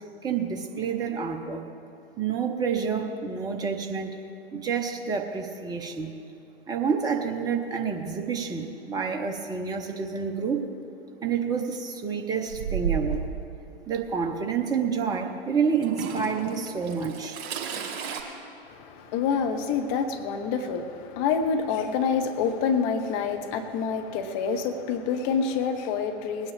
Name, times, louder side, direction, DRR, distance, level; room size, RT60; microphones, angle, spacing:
voice 1, 0.2-1.6 2.2-4.1 4.5-6.1 6.7-10.6 11.2-13.3 13.9-17.4, right 6 dB, 10° right, 3 dB, 0.8 m, -28 dB
Toilet flush / Trickle dribble, 12.5-13.4 14.4-14.5 15.8-18.2, right 7 dB, 40° right, 2.0 m, -32 dB
voice 2, 18.7-26.5, left 6 dB, 35° left, 6 dB, 1.2 m, -27 dB
20.0 x 9.6 x 3.5 m, 2.9 s
figure-of-eight pair, 100°, 31 cm